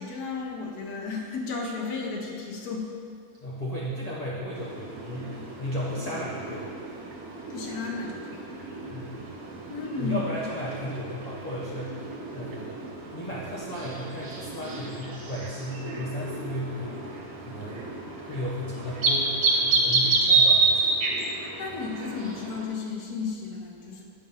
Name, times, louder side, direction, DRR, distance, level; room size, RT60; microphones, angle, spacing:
voice 1, 0.0-2.9 7.5-8.6 9.7-10.2 21.3-24.0, left 4 dB, 85° left, -1 dB, 1.4 m, -34 dB
voice 2, 3.4-6.7 8.9-9.2 10.0-12.8 13.1-17.0 17.4-17.9 18.2-21.0, equal, 30° left, -7 dB, 0.9 m, -35 dB
sound 1, 4.5-22.7, right 3 dB, 80° right, 1.5 m, -29 dB
9.1 x 3.7 x 5.5 m, 2.2 s
omnidirectional pair, 1.6 m